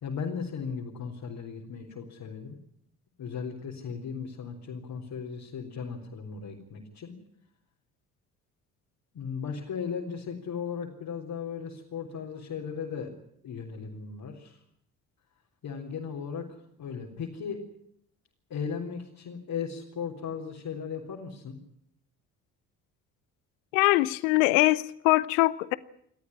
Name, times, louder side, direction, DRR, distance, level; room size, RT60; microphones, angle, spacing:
voice 1, 0.0-2.6 3.2-7.2 9.1-13.1 13.4-14.6 15.6-16.5 16.8-17.6 18.5-21.6, left 6 dB, 50° left, -1 dB, 3.8 m, -36 dB
voice 2, 23.7-25.8, left 20 dB, 70° left, 20 dB, 0.9 m, -23 dB
29.0 x 13.5 x 9.9 m, 0.71 s
figure-of-eight pair, 45°, 43 cm